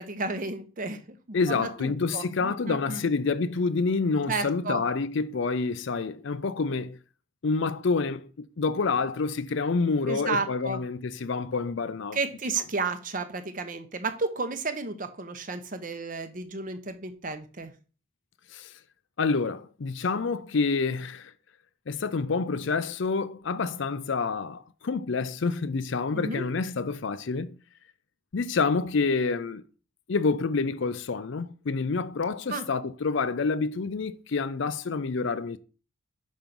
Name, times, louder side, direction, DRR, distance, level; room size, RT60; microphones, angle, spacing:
voice 1, 0.0-3.0 4.3-4.8 10.0-10.8 12.1-17.7 26.1-26.4 32.5-32.6, right 3 dB, 40° right, 0.8 m, -32 dB
voice 2, 1.3-7.0 7.4-12.2 18.5-18.7 19.2-21.3 21.9-27.6 28.3-29.6 30.1-35.6, left 4 dB, 60° left, 0.5 m, -28 dB
5.3 x 5.1 x 6.0 m
head